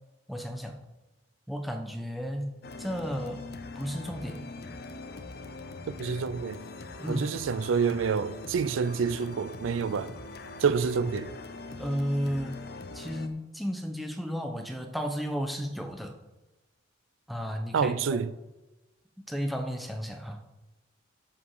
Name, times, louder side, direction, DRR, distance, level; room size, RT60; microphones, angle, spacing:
voice 1, 0.3-0.8 1.5-3.4 3.7-4.5 7.0-7.3 11.8-12.7 12.9-16.2 17.3-18.3 19.3-20.4, equal, ahead, 0.9 m, -33 dB
sound 1, 2.6-13.3, left 2 dB, 55° left, 0.7 m, -42 dB
voice 2, 5.9-6.6 7.1-10.1 10.6-11.3 17.7-18.3, right 6 dB, 85° right, 0.4 m, -28 dB
13.5 x 5.1 x 4.9 m
head